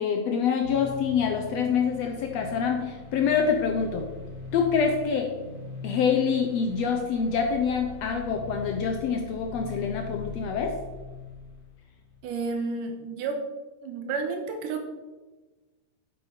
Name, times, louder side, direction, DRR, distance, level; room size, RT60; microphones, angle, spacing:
voice 1, 0.0-4.1 4.5-5.4 5.8-10.8, left 6 dB, 75° left, 3 dB, 1.6 m, -26 dB
sound 1, 0.6-12.2, left 5 dB, 35° left, 1.7 m, -41 dB
voice 2, 12.2-13.4 13.8-14.9, right 4 dB, 80° right, 5 dB, 2.7 m, -31 dB
7.9 x 7.5 x 5.2 m, 1.2 s
omnidirectional pair, 3.7 m